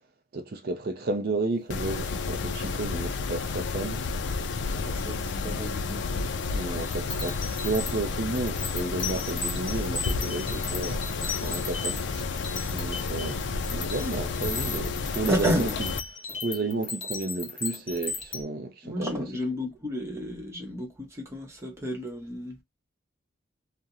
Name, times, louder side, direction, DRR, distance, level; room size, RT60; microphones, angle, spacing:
voice 1, 0.3-4.0 6.5-11.0 11.4-12.4 12.7-13.5 13.7-15.7 16.4-19.2, right 2 dB, 50° right, 0.5 m, -32 dB
Mechanisms, 1.7-16.0, left 4 dB, 65° left, 0.4 m, -31 dB
voice 2, 4.8-6.3 15.3-15.8 18.8-22.6, equal, 15° right, 0.8 m, -32 dB
sound 1, 6.8-18.4, left 4 dB, 30° left, 0.7 m, -36 dB
2.4 x 2.1 x 2.7 m
head